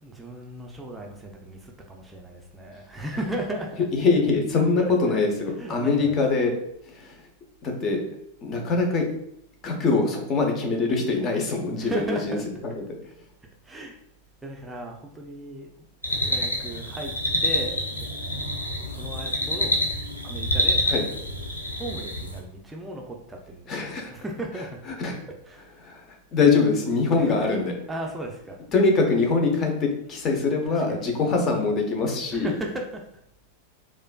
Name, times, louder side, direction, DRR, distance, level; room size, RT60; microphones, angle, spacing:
voice 1, 0.0-3.9 4.8-5.2 5.5-6.2 11.8-12.5 13.6-14.0 14.4-15.7 16.3-17.1 17.4-17.8 18.8-19.8 20.2-20.8 21.7-24.8 25.4-25.7 27.1-27.5 27.9-28.9 30.7-31.1 32.3-33.0, right 1 dB, 10° right, 1 dB, 0.5 m, -36 dB
voice 2, 3.9-6.6 6.8-7.2 7.6-8.0 8.4-9.1 9.6-12.4 12.6-13.0 20.9-21.0 23.7-24.1 24.6-24.7 25.0-25.2 25.8-27.7 28.7-32.5, left 4 dB, 30° left, 3 dB, 0.8 m, -23 dB
sound 1, 16.0-22.4, left 1 dB, 80° left, 0.6 m, -27 dB
4.2 x 2.5 x 2.3 m, 0.75 s
figure-of-eight pair, 90°, 0 cm